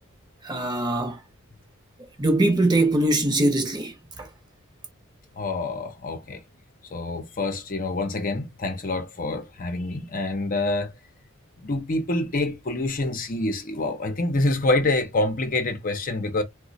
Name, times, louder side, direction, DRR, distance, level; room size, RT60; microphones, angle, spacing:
voice 1, 0.4-1.2 2.2-4.3, right 1 dB, 20° right, 0.9 m, -22 dB
voice 2, 5.4-6.4 6.9-10.9 11.6-16.4, left 2 dB, 40° left, 0.7 m, -26 dB
2.9 x 2.1 x 3.9 m
head